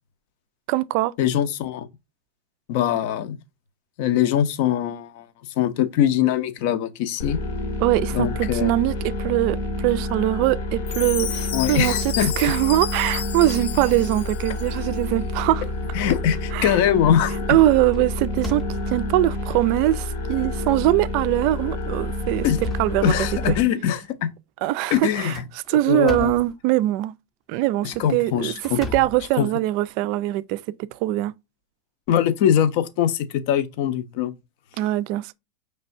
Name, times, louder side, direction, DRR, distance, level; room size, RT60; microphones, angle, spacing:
voice 1, 0.7-1.1 7.8-15.6 16.5-16.7 17.5-22.5 22.8-23.1 23.5-23.6 24.6-25.3 25.7-27.1 27.5-31.3 34.8-35.3, right 15 dB, 45° right, 0.3 m, -22 dB
voice 2, 1.2-1.9 2.7-3.4 4.0-5.3 5.6-7.4 8.1-8.7 11.5-12.3 15.9-17.6 22.4-22.6 23.0-24.3 24.9-25.4 25.7-26.4 27.8-28.8 29.4-29.5 32.1-34.3, left 10 dB, 50° left, 0.6 m, -22 dB
sound 1, 7.2-23.6, left 2 dB, 70° left, 1.1 m, -29 dB
Chime, 10.9-14.9, left 9 dB, 90° left, 0.6 m, -32 dB
sound 2, 16.0-16.5 17.0-17.2 17.6-19.2 19.9-20.0 20.4-20.5 21.4-21.7 22.1-23.6 25.1-26.6 27.7-29.9, left 2 dB, 10° left, 0.6 m, -37 dB
5.4 x 3.3 x 2.6 m
supercardioid pair, 165°, 0 cm